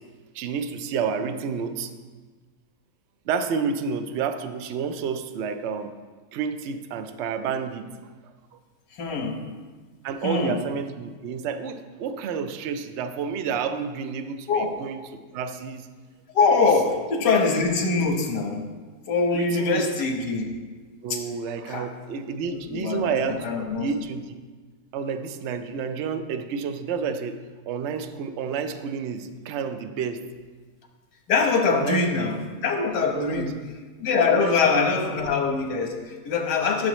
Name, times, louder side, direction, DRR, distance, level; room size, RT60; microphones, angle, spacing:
voice 1, 0.3-1.9 3.3-5.9 6.3-7.9 8.2-8.3 10.0-15.0 15.3-15.9 16.6-16.7 19.3-19.9 21.0-23.5 23.8-24.4 24.9-27.4 27.7-30.2 31.7-32.0 33.1-33.5 34.3-34.9, right 6 dB, 85° right, 9 dB, 0.6 m, -30 dB
voice 2, 9.0-9.4 10.2-10.6 14.5-14.8 16.3-18.7 19.1-20.5 21.1-21.2 21.7-21.9 22.3-23.9 31.3-33.6 34.0-36.9, left 4 dB, 85° left, 2 dB, 1.8 m, -23 dB
11.5 x 6.5 x 3.0 m, 1.4 s
omnidirectional pair, 1.8 m